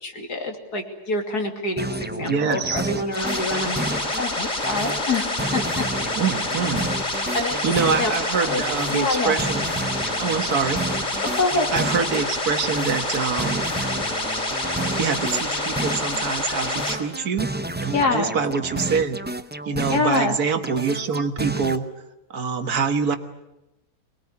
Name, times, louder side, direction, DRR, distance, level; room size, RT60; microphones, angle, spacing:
voice 1, 0.0-3.8 4.1-5.8 6.4-6.5 7.3-7.6 8.0-8.1 8.4-8.6 8.9-9.3 11.2-11.9 17.9-18.3 19.9-20.4, left 3 dB, 75° left, 4 dB, 3.4 m, -26 dB
sound 1, 1.8-4.3 4.6-8.3 8.6-12.3 12.6-16.3 16.6-20.3 20.6-21.8, right 1 dB, 10° right, 0.5 m, -31 dB
voice 2, 2.3-2.9 6.2-6.9 7.6-9.7 10.2-10.8 11.7-13.6 15.0-17.5 17.8-19.2 19.7-21.9 22.3-23.2, right 5 dB, 70° right, 8 dB, 1.9 m, -25 dB
sound 2, 3.1-16.9, left 2 dB, 50° left, 4.2 m, -27 dB
23.5 x 21.0 x 9.7 m, 0.95 s
omnidirectional pair, 1.7 m